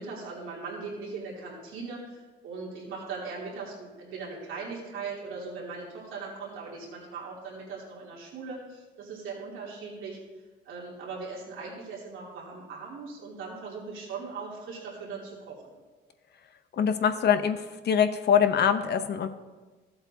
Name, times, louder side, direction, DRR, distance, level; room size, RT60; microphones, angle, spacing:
voice 1, 0.0-10.2 10.6-15.8, right 4 dB, 85° right, -5 dB, 2.9 m, -39 dB
voice 2, 16.7-19.3, left 8 dB, 55° left, 9 dB, 0.7 m, -24 dB
14.0 x 7.8 x 2.8 m, 1.3 s
cardioid pair, 90°, 20 cm